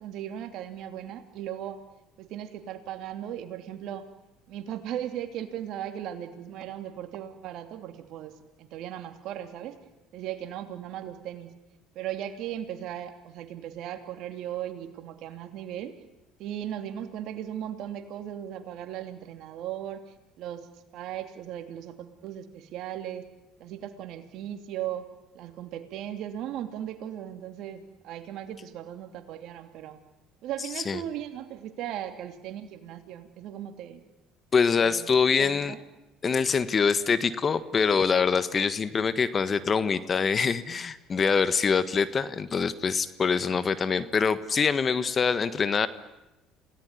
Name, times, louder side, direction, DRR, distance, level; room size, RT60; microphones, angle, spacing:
voice 1, 0.0-1.8 2.2-4.0 4.5-8.3 8.6-9.7 10.1-11.5 11.9-15.9 16.4-20.0 20.4-20.7 20.9-23.2 23.6-25.1 25.3-30.0 30.4-34.0 34.8-35.1 35.4-35.8, right 11 dB, 65° right, 7 dB, 2.9 m, -37 dB
voice 2, 34.5-35.7 36.2-45.9, left 5 dB, 35° left, 14 dB, 1.5 m, -24 dB
27.5 x 18.0 x 9.8 m, 0.97 s
supercardioid pair, 80°, 0 cm